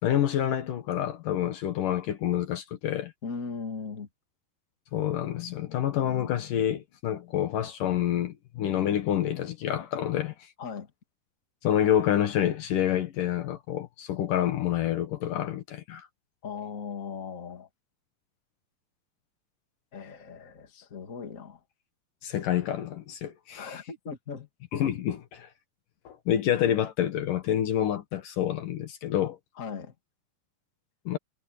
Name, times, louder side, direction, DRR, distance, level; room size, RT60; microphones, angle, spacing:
voice 1, 0.0-3.1 4.9-10.5 11.6-16.1 22.2-23.8 24.7-25.5 26.0-29.4 31.1-31.2, left 11 dB, 70° left, 2.9 m, -28 dB
voice 2, 3.2-4.1 10.6-10.9 16.4-17.7 19.9-21.6 23.5-24.5 29.6-29.9, left 5 dB, 25° left, 2.3 m, -38 dB
omnidirectional pair, 4.2 m